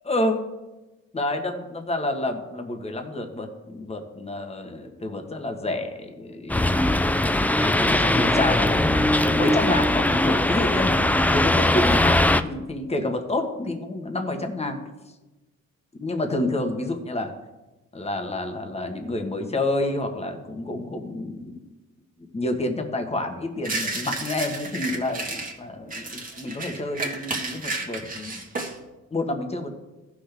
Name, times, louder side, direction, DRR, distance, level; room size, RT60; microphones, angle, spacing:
voice 1, 0.0-0.4 1.1-6.9 7.6-14.8 16.0-17.3 17.9-21.6 22.3-28.4 29.1-29.7, left 2 dB, 20° left, 4 dB, 1.4 m, -29 dB
sound 1, 6.5-12.4, left 1 dB, 5° left, 0.4 m, -20 dB
sound 2, 23.6-25.5 25.9-28.8, right 2 dB, 30° right, 1.7 m, -32 dB
15.0 x 6.0 x 3.5 m, 1.1 s
cardioid pair, 90°, 30 cm